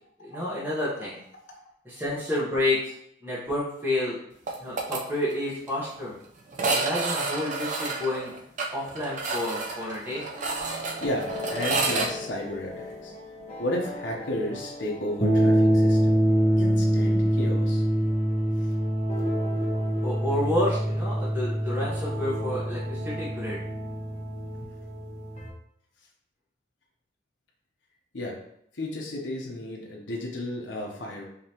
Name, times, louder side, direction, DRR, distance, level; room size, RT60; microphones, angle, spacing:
voice 1, 0.2-1.2 1.8-2.9 3.2-4.2 4.6-6.2 6.7-8.3 8.7-10.3 20.0-23.6, left 1 dB, 10° right, -9 dB, 1.0 m, -29 dB
sound 1, 4.5-5.0 5.3-5.4 5.7-5.8 6.5-12.1, right 3 dB, 45° right, 0.6 m, -30 dB
sound 2, 10.6-25.5, equal, 40° left, 0.9 m, -26 dB
voice 2, 10.7-13.1 13.6-16.2 16.6-17.8 18.6-18.7 28.1-28.4 28.7-31.3, left 1 dB, 80° left, -1 dB, 0.8 m, -33 dB
5.1 x 2.9 x 2.9 m, 0.72 s
head